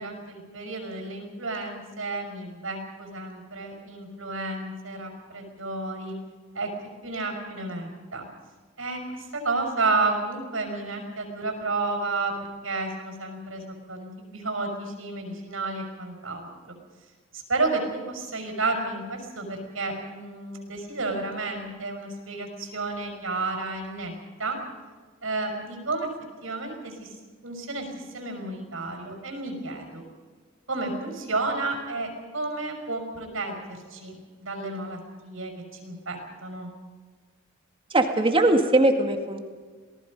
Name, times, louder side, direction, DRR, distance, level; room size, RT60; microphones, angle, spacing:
voice 1, 0.0-6.1 6.5-6.7 7.0-8.2 8.8-12.3 12.6-13.6 13.9-16.8 17.3-24.1 24.4-24.6 25.2-26.1 26.4-27.1 27.4-30.0 30.7-35.5 35.8-36.7, right 3 dB, 85° right, 3 dB, 5.8 m, -31 dB
voice 2, 37.9-39.4, right 2 dB, 25° right, 5 dB, 2.0 m, -20 dB
28.0 x 19.0 x 5.4 m, 1.5 s
head